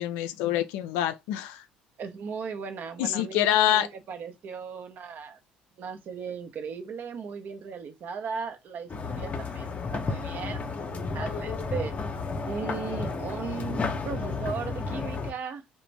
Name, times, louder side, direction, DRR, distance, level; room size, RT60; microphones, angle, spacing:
voice 1, 0.0-1.6 3.0-3.9, left 12 dB, 70° left, 0.3 m, -26 dB
voice 2, 2.0-5.4 5.8-11.9 12.4-15.6, right 6 dB, 50° right, 0.6 m, -37 dB
sound 1, 8.9-15.3, left 4 dB, 40° left, 0.6 m, -32 dB
2.4 x 2.1 x 3.2 m
hypercardioid pair, 60°, 4 cm